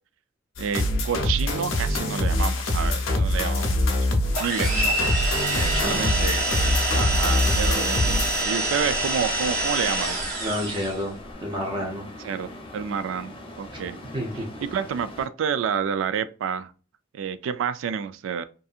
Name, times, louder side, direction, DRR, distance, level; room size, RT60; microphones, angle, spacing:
sound 1, 0.6-8.4, left 1 dB, 85° left, 0.6 m, -24 dB
voice 1, 0.6-4.1 4.4-5.0 5.8-10.2 12.2-14.0 14.3-16.7 17.1-18.4, right 7 dB, 80° right, 0.3 m, -29 dB
sound 2, 4.3-11.0, right 1 dB, 50° right, 1.1 m, -26 dB
voice 2, 5.5-6.0 10.4-11.1 11.4-12.0 13.7-13.8 14.1-14.5, equal, 25° right, 0.5 m, -30 dB
sound 3, 6.3-15.3, left 1 dB, 25° left, 0.7 m, -43 dB
2.6 x 2.6 x 2.3 m
head